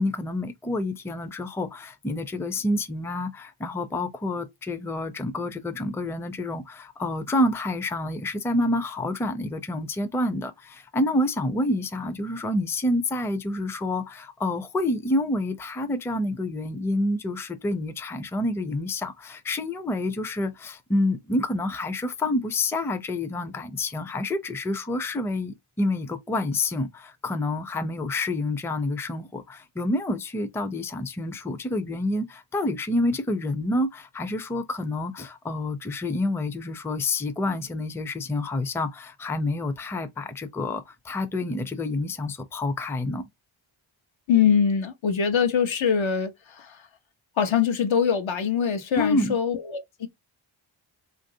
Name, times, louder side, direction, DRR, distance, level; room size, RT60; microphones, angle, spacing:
voice 1, 0.0-43.2 49.0-49.3, left 2 dB, 5° left, 0.5 m, -28 dB
voice 2, 44.3-46.9 47.4-50.1, left 7 dB, 65° left, 0.9 m, -23 dB
3.1 x 2.6 x 2.6 m
cardioid pair, 55°, 50 cm